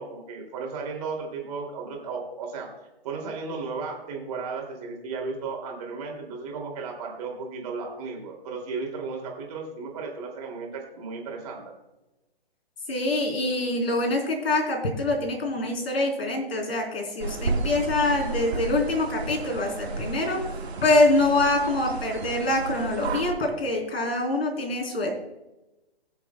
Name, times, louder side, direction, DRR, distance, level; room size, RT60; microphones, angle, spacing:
voice 1, 0.0-2.7 3.0-11.6, right 4 dB, 35° right, 0 dB, 2.7 m, -34 dB
voice 2, 12.9-20.4 20.8-25.1, left 2 dB, 70° left, 1 dB, 3.7 m, -25 dB
sound 1, 17.2-23.3, right 3 dB, 85° right, 1.8 m, -32 dB
22.0 x 7.3 x 2.3 m, 1.0 s
hypercardioid pair, 150°, 31 cm